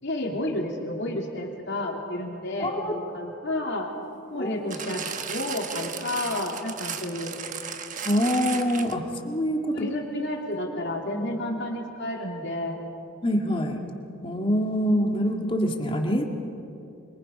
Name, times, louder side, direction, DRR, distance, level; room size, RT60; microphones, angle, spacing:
voice 1, 0.0-3.9 4.3-7.4 8.8-8.9 9.7-12.9, left 1 dB, 55° left, 1 dB, 3.2 m, -31 dB
voice 2, 2.6-2.9 4.3-4.5 8.0-9.9 13.2-13.8 14.2-16.4, equal, 25° left, 2 dB, 2.1 m, -25 dB
sound 1, 4.7-9.1 9.9-10.0, right 7 dB, 35° right, 1.2 m, -35 dB
26.5 x 25.0 x 5.5 m, 2.7 s
head